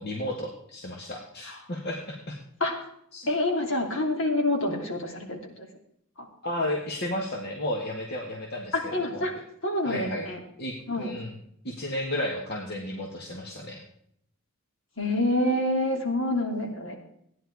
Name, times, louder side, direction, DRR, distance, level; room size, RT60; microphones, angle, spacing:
voice 1, 0.0-2.4 3.1-3.3 6.4-9.2 9.8-10.3 10.6-11.3 11.6-13.8, left 1 dB, 50° left, 0 dB, 1.7 m, -33 dB
voice 2, 3.3-5.7 6.2-6.3 8.7-9.3 9.6-10.4 10.9-11.1 15.0-17.0, left 1 dB, 70° left, 1 dB, 3.0 m, -27 dB
16.0 x 10.5 x 4.8 m, 0.72 s
head